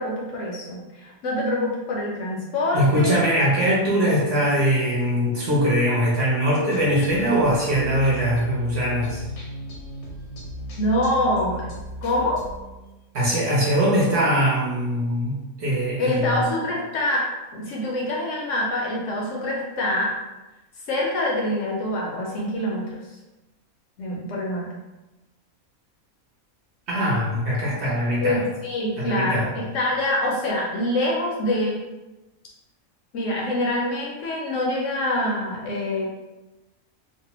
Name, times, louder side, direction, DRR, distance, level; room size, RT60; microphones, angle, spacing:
voice 1, 0.0-3.2 10.8-11.7 12.0-12.4 16.0-17.2 17.5-20.1 20.9-23.0 24.0-24.7 28.2-31.8 33.1-36.1, left 1 dB, 65° left, -3 dB, 0.9 m, -25 dB
voice 2, 2.7-9.2 13.1-16.5 26.9-28.4 29.0-29.5, equal, 60° right, -5 dB, 0.8 m, -22 dB
sound 1, 6.7-13.2, left 1 dB, 90° left, 1.2 m, -36 dB
2.6 x 2.1 x 2.8 m, 1.0 s
omnidirectional pair, 1.5 m